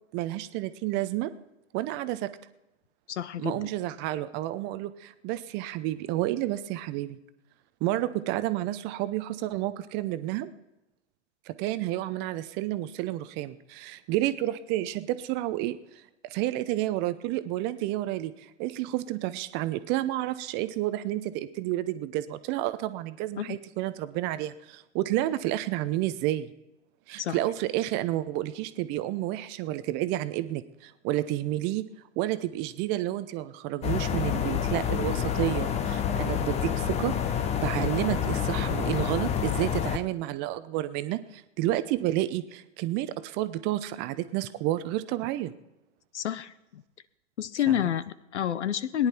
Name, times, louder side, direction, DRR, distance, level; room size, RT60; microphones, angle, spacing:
voice 1, 0.1-1.3 1.7-2.3 3.4-7.2 7.8-10.5 11.5-15.8 16.3-26.5 27.1-31.9 32.2-37.1 37.6-45.5 47.8-47.9, right 15 dB, 30° right, 13 dB, 0.7 m, -30 dB
voice 2, 3.1-3.7 23.4-23.6 27.2-27.4 46.1-46.8 47.4-49.1, left 10 dB, 65° left, 17 dB, 0.9 m, -29 dB
sound 1, 33.8-40.0, left 8 dB, 15° left, 0.8 m, -28 dB
18.5 x 10.5 x 4.4 m, 0.92 s
figure-of-eight pair, 110°, 37 cm